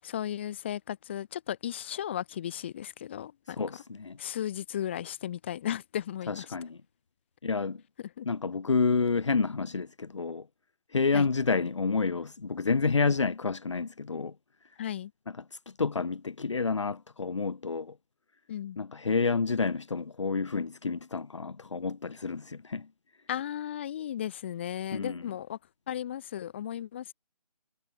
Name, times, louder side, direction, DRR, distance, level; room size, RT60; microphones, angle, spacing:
voice 1, 0.0-3.6 4.2-6.5 8.2-8.3 11.1-11.3 14.8-15.1 18.5-18.8 23.3-25.6 25.9-27.1, left 10 dB, 15° left, 4.7 m, -35 dB
voice 2, 3.5-4.2 6.3-6.8 7.4-7.8 8.3-10.5 10.9-14.3 15.5-17.9 18.8-22.9 24.9-25.2, left 4 dB, 45° left, 2.1 m, -29 dB
hypercardioid pair, 175°, 21 cm